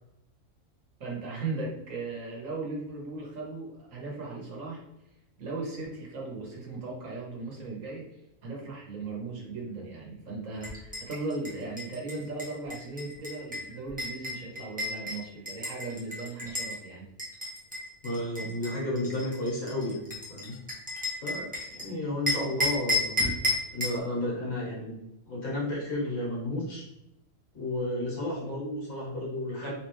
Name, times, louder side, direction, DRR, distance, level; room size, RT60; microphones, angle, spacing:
voice 1, 1.0-4.8 5.4-8.0 8.4-17.1 29.6-29.7, right 3 dB, 75° right, -3 dB, 1.5 m, -37 dB
sound 1, 10.6-16.8 17.2-21.8 22.3-24.0, left 1 dB, 5° right, 0.9 m, -33 dB
voice 2, 18.0-20.0 20.3-20.6 21.2-23.3 23.7-24.9 25.3-26.8 27.5-29.7, left 1 dB, 80° left, -6 dB, 1.9 m, -32 dB
3.8 x 3.2 x 3.1 m, 0.87 s
omnidirectional pair, 1.4 m